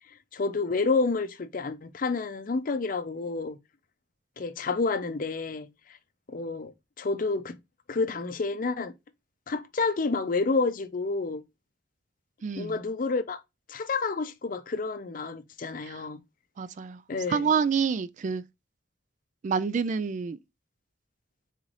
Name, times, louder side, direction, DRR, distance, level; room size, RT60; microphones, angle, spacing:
voice 1, 0.3-3.6 4.4-5.7 6.3-6.7 7.0-7.6 7.9-8.9 9.5-11.4 12.6-13.4 13.7-16.2 17.1-17.5, left 3 dB, 50° left, 0.5 m, -29 dB
voice 2, 12.4-12.8 15.8-16.1 16.6-17.0 17.3-18.4 19.4-20.4, right 6 dB, 45° right, 0.3 m, -28 dB
4.0 x 3.8 x 3.2 m
head